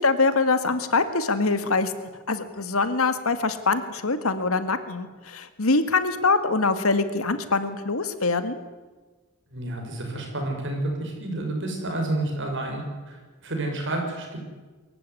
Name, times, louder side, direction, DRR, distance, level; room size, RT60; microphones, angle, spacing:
voice 1, 0.0-8.6, left 3 dB, 75° left, 11 dB, 1.9 m, -24 dB
voice 2, 9.5-14.4, right 2 dB, 60° right, 2 dB, 6.6 m, -30 dB
24.0 x 15.0 x 9.7 m, 1.3 s
head